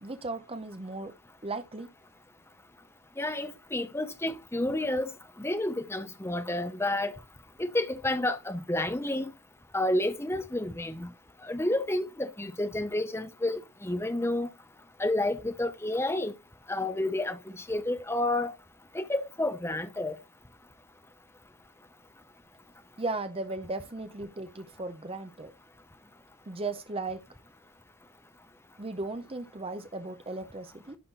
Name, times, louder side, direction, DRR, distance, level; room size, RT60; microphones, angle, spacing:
voice 1, 0.0-1.1 1.4-1.9 23.0-25.5 26.5-27.2 28.8-31.0, right 2 dB, 25° right, 0.8 m, -36 dB
voice 2, 3.2-5.1 5.4-7.1 7.6-9.3 9.7-11.1 11.4-14.5 15.0-16.3 16.7-18.5 18.9-20.2, left 1 dB, 10° left, 0.8 m, -30 dB
11.0 x 4.3 x 4.2 m
head